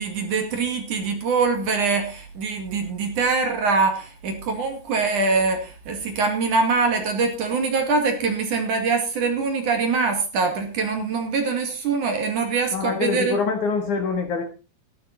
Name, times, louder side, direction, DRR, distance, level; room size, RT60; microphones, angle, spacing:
voice 1, 0.0-13.4, right 4 dB, 50° right, 5 dB, 3.2 m, -23 dB
voice 2, 12.7-14.4, left 5 dB, 60° left, 5 dB, 2.4 m, -25 dB
14.5 x 12.0 x 4.2 m, 0.33 s
omnidirectional pair, 5.0 m